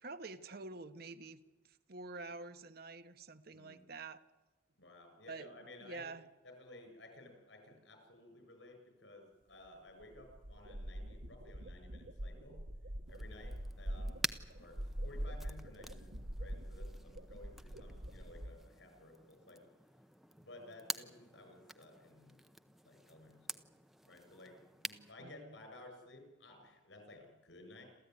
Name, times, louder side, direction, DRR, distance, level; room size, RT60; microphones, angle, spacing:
voice 1, 0.0-1.4 1.6-4.2 5.3-5.5 5.8-6.3 25.2-25.5, right 3 dB, 50° right, 9 dB, 1.0 m, -48 dB
voice 2, 3.5-3.8 4.8-6.1 6.4-12.6 13.1-14.3 14.6-19.7 20.4-22.4 22.8-23.7 24.1-27.8, left 2 dB, 65° left, 5 dB, 7.5 m, -56 dB
sound 1, 9.6-9.7 10.0-18.5, equal, 75° right, 1.6 m, -44 dB
sound 2, 13.1-25.1, right 1 dB, ahead, 0.7 m, -48 dB
28.0 x 14.5 x 9.6 m, 1.2 s
head